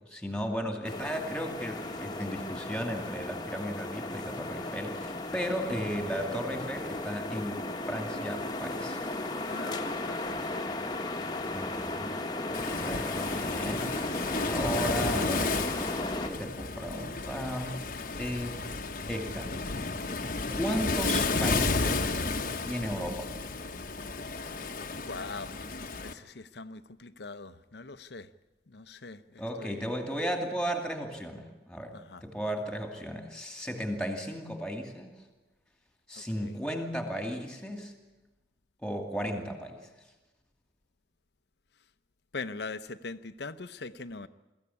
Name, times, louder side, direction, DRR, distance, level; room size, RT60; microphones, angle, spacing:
voice 1, 0.1-9.0 11.5-14.0 14.5-15.6 16.1-17.9 18.2-18.6 19.1-19.8 20.5-22.2 22.6-23.3 29.4-35.1 36.1-37.9 38.8-39.8, equal, 5° left, 4 dB, 2.5 m, -35 dB
sound 1, 0.8-16.3, left 2 dB, 20° left, 1.3 m, -35 dB
voice 2, 9.5-10.7 11.3-11.4 25.0-25.6 26.0-28.3 28.7-29.9 31.9-32.2 36.2-36.6 42.3-44.3, left 3 dB, 65° left, 13 dB, 0.8 m, -42 dB
Waves surf, 12.5-26.1, left 3 dB, 45° left, 1.1 m, -33 dB
23.0 x 15.0 x 9.8 m, 1.1 s
head